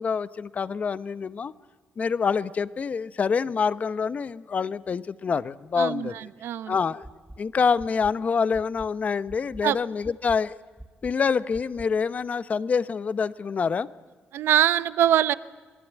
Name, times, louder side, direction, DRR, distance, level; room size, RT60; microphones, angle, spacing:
voice 1, 0.0-1.5 2.0-6.3 6.7-7.0 7.4-10.5 11.0-13.9, left 5 dB, 40° left, 15 dB, 0.9 m, -26 dB
voice 2, 5.8-6.1 6.4-6.7 9.6-9.8 14.3-15.3, right 11 dB, 90° right, 15 dB, 0.8 m, -22 dB
sound 1, 7.0-7.4 7.8-8.1 8.5-8.9 9.3-9.6 10.0-10.4 10.8-11.1 11.5-11.9, right 1 dB, 5° right, 1.1 m, -43 dB
27.0 x 21.0 x 9.3 m, 1.4 s
cardioid pair, 120°, 4 cm